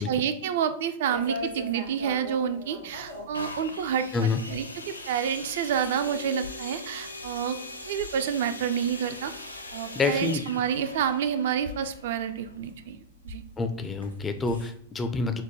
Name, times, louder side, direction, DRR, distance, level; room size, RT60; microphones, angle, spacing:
voice 1, 0.1-7.6 7.9-9.3 9.7-13.0 13.2-13.4, right 8 dB, 55° right, 10 dB, 0.3 m, -29 dB
sound 1, 1.1-14.7, left 1 dB, 90° right, 0.7 m, -43 dB
sound 2, 3.3-13.0 13.7-13.8, left 2 dB, 85° left, 0.4 m, -41 dB
voice 2, 10.0-10.4 13.6-15.4, left 4 dB, 15° left, 7 dB, 0.4 m, -27 dB
4.5 x 2.1 x 3.8 m, 0.65 s
figure-of-eight pair, 95°, 0 cm